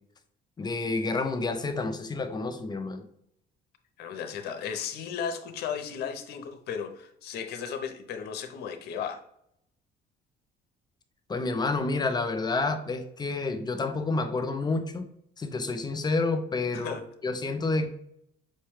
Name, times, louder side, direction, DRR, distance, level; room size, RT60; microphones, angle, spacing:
voice 1, 0.6-3.0 11.3-15.0 15.4-17.9, left 3 dB, 25° left, 7 dB, 0.5 m, -29 dB
voice 2, 4.0-9.2 16.7-17.0, left 7 dB, 70° left, 6 dB, 0.7 m, -35 dB
5.5 x 2.2 x 3.2 m, 0.73 s
cardioid pair, 110°, 17 cm